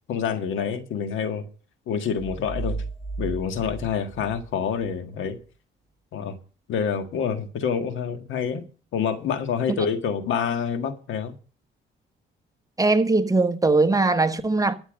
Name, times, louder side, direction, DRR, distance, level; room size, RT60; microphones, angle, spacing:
voice 1, 0.1-1.4 1.9-2.8 3.2-5.4 6.1-6.4 6.7-8.7 8.9-11.3, left 7 dB, 75° left, 1.6 m, -27 dB
sound 1, 2.2-5.0, right 3 dB, 15° left, 4.9 m, -34 dB
voice 2, 12.8-14.8, right 3 dB, 15° right, 1.1 m, -20 dB
12.5 x 7.2 x 6.3 m
cardioid pair, 90°, 20 cm